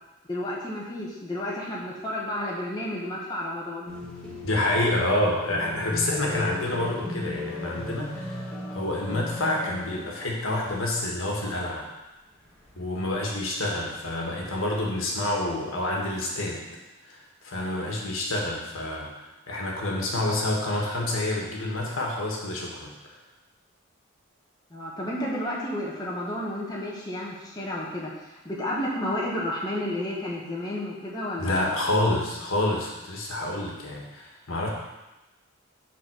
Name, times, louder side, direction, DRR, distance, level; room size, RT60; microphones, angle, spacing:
voice 1, 0.3-3.9 24.7-28.1 28.4-31.8, left 1 dB, 20° left, -5 dB, 1.1 m, -31 dB
sound 1, 3.9-10.4 10.7-10.8 12.5-13.1 14.2-14.9, left 2 dB, 5° left, 1.5 m, -36 dB
voice 2, 4.4-11.9 12.7-16.6 17.1-23.2 31.4-34.7, left 1 dB, 80° left, -1 dB, 1.5 m, -28 dB
5.9 x 4.2 x 6.2 m, 1.0 s
head